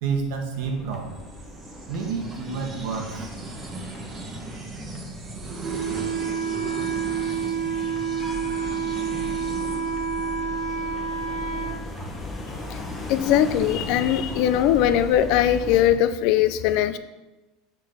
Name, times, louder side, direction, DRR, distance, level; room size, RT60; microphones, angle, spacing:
voice 1, 0.0-1.2 1.9-3.3, right 5 dB, 70° right, 2 dB, 1.2 m, -29 dB
sound 1, 0.5-15.9, left 1 dB, 15° left, 1.0 m, -38 dB
sound 2, 1.1-10.8, right 2 dB, 25° right, 1.1 m, -38 dB
Wind instrument woodwind instrument, 5.6-11.8, right 6 dB, 50° right, 1.0 m, -28 dB
voice 2, 12.5-12.8 13.1-17.0, left 11 dB, 60° left, 12 dB, 0.4 m, -21 dB
4.8 x 4.5 x 5.0 m, 1.1 s
supercardioid pair, 125°, 0 cm